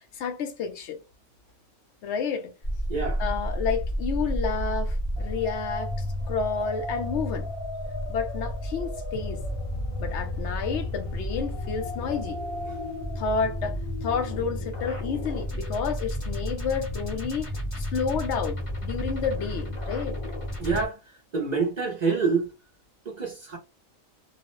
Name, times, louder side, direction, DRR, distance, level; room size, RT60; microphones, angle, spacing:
voice 1, 0.1-1.0 2.0-2.5 3.2-7.5 8.1-9.4 10.0-12.4 13.2-17.5 17.8-20.2, left 6 dB, 65° left, 0.9 m, -30 dB
sound 1, 2.6-20.9, equal, 30° left, 0.7 m, -32 dB
voice 2, 2.9-3.2 20.6-21.0 21.3-22.5 23.1-23.6, right 4 dB, 50° right, 0.5 m, -26 dB
2.4 x 2.0 x 3.0 m
omnidirectional pair, 1.4 m